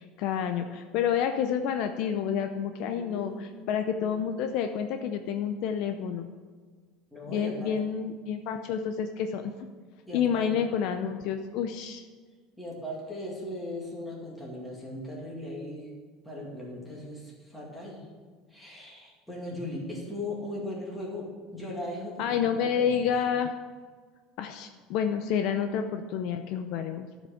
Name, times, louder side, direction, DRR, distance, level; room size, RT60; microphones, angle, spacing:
voice 1, 0.0-6.3 7.3-9.5 10.1-12.1 22.2-23.5 24.4-27.1, left 8 dB, 50° left, 6 dB, 0.5 m, -29 dB
voice 2, 2.9-3.5 7.1-7.7 10.1-10.5 12.6-15.9 16.2-18.1 18.5-23.1, left 1 dB, ahead, -5 dB, 2.2 m, -38 dB
12.5 x 5.1 x 6.5 m, 1.5 s
cardioid pair, 175°, 0 cm